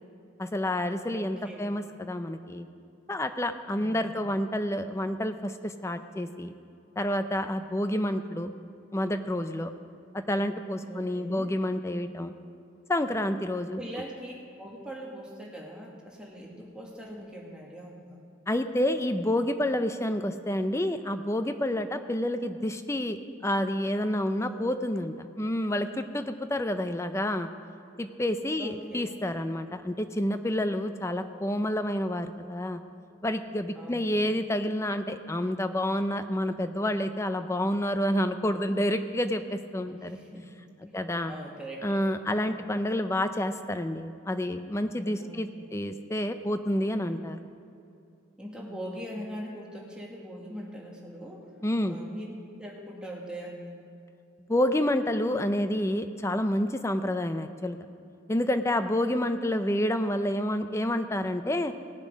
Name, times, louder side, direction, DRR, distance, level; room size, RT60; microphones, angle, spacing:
voice 1, 0.4-2.7 3.1-6.5 7.0-8.5 8.9-9.7 10.3-12.3 12.9-13.8 18.5-23.2 23.4-27.5 28.0-32.8 33.2-40.0 40.9-41.3 41.8-47.4 51.6-52.0 54.5-57.8 58.3-61.7, left 1 dB, 15° left, 9 dB, 0.5 m, -29 dB
voice 2, 1.1-1.8 3.7-4.3 10.8-11.6 13.8-18.2 24.3-24.7 24.9-25.4 28.6-29.0 33.7-34.2 39.8-40.5 40.8-42.6 45.2-45.7 48.4-51.5 51.9-52.2 52.6-53.8, equal, 5° right, -3 dB, 1.7 m, -42 dB
18.5 x 7.1 x 5.2 m, 2.6 s
head